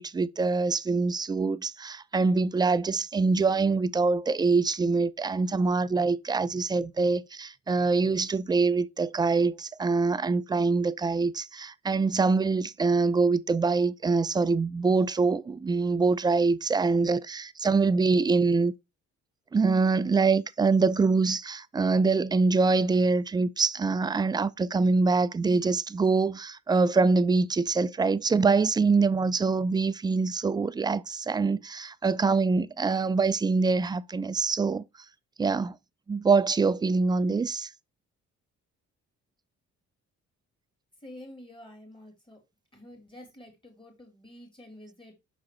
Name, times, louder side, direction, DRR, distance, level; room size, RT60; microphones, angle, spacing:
voice 1, 0.0-18.7 19.5-34.8 35.4-35.8 36.1-37.7, right 4 dB, 15° right, 0.3 m, -24 dB
voice 2, 41.0-42.4 42.7-45.1, left 1 dB, 15° left, 3.4 m, -48 dB
6.4 x 4.8 x 3.1 m
cardioid pair, 90°, 30 cm